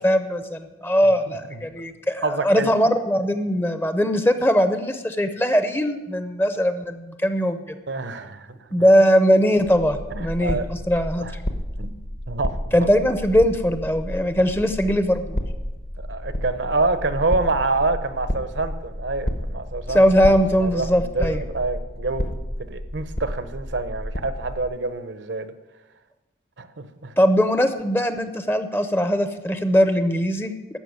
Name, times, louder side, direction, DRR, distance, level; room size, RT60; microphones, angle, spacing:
voice 1, 0.0-7.6 8.7-11.3 12.7-15.4 19.9-21.4 27.2-30.5, equal, 10° left, 9 dB, 0.6 m, -20 dB
voice 2, 1.0-1.6 2.2-2.7 7.9-8.7 10.1-10.7 11.2-11.3 11.8-12.0 12.3-12.5 12.8-12.9 16.0-20.0 20.6-25.5 26.6-27.1, right 3 dB, 70° right, 11 dB, 0.9 m, -27 dB
sound 1, 9.6-24.7, equal, 50° left, 1.1 m, -31 dB
13.5 x 5.8 x 9.5 m, 1.1 s
head